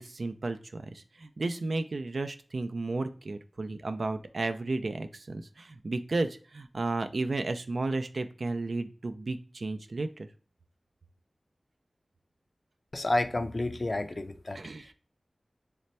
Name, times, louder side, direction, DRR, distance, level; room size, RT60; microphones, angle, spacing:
voice 1, 0.0-10.3 14.5-14.9, right 2 dB, 80° right, 0.3 m, -33 dB
voice 2, 12.9-14.6, left 2 dB, 50° left, 0.3 m, -30 dB
3.2 x 2.1 x 4.0 m
wide cardioid pair, 45°, 0 cm